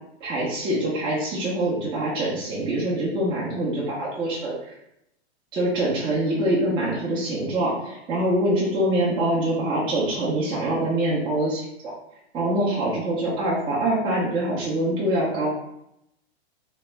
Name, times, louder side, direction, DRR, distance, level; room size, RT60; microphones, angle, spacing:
voice 1, 0.2-4.6 5.5-11.9 12.3-15.5, right 1 dB, 15° right, -7 dB, 0.5 m, -24 dB
2.8 x 2.1 x 3.1 m, 0.80 s
hypercardioid pair, 140°, 32 cm